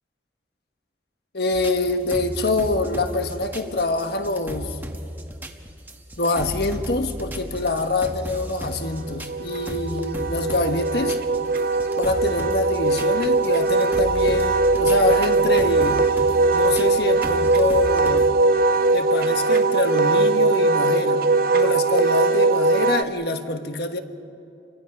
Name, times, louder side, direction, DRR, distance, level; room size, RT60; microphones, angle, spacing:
voice 1, 1.3-4.8 6.2-11.2 12.0-16.0 16.5-18.3 18.9-21.2 21.5-24.0, left 2 dB, 65° left, 7 dB, 1.4 m, -25 dB
sound 1, 1.5-18.3, equal, 10° right, 1.1 m, -36 dB
Wind instrument woodwind instrument, 8.7-23.0, right 3 dB, 50° right, 0.6 m, -20 dB
29.0 x 23.5 x 5.5 m, 2.6 s
head